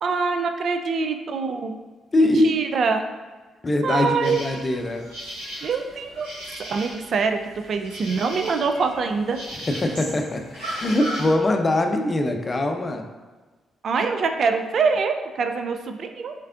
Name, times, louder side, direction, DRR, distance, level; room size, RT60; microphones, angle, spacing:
voice 1, 0.0-1.8 2.2-3.0 3.8-4.4 5.6-6.3 6.7-9.4 13.8-16.3, right 4 dB, 60° right, 6 dB, 0.3 m, -24 dB
voice 2, 2.1-2.5 3.6-5.1 9.7-13.0, left 1 dB, 35° left, 4 dB, 0.5 m, -22 dB
sound 1, 4.2-11.3, equal, 90° right, 1.2 m, -37 dB
4.4 x 3.2 x 2.5 m, 1.3 s
hypercardioid pair, 45°, 0 cm